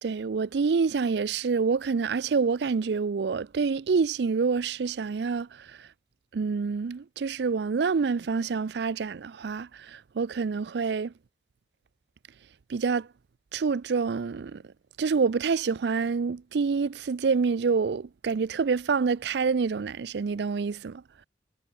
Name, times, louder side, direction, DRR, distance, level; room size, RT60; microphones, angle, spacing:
voice 1, 0.0-5.7 6.3-11.1 12.7-13.1 13.5-14.6 15.0-21.0, right 5 dB, 65° right, 0.4 m, -27 dB
head